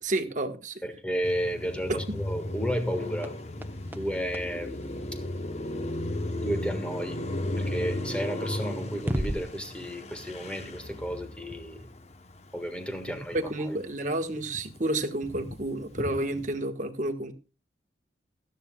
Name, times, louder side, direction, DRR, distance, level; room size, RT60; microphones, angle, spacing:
voice 1, 0.0-0.8 1.9-2.2 13.1-17.3, right 1 dB, 45° right, 1.4 m, -30 dB
voice 2, 0.8-3.3 3.9-4.7 6.4-7.2 7.6-11.8 12.5-13.4, equal, 5° left, 1.6 m, -32 dB
Car passing by, 1.2-13.7 14.0-16.5, left 1 dB, 35° left, 0.9 m, -36 dB
sound 1, 2.1-5.9 8.1-8.2 8.9-9.5, equal, 10° right, 0.7 m, -37 dB
17.0 x 13.0 x 2.3 m
head